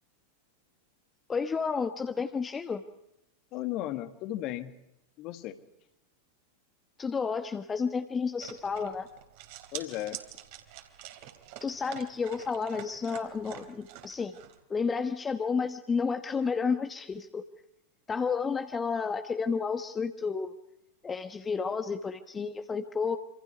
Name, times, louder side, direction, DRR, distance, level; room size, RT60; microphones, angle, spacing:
voice 1, 1.3-2.8 7.0-9.1 11.6-14.4 14.7-17.4 18.1-20.5 21.0-23.2, left 5 dB, 15° left, 8 dB, 1.1 m, -31 dB
voice 2, 3.5-4.7 5.2-5.6 9.7-10.2, left 14 dB, 40° left, 9 dB, 1.8 m, -35 dB
sound 1, 8.4-14.6, right 12 dB, 50° right, 3.1 m, -46 dB
27.0 x 26.5 x 4.8 m, 0.89 s
figure-of-eight pair, 90°, 0 cm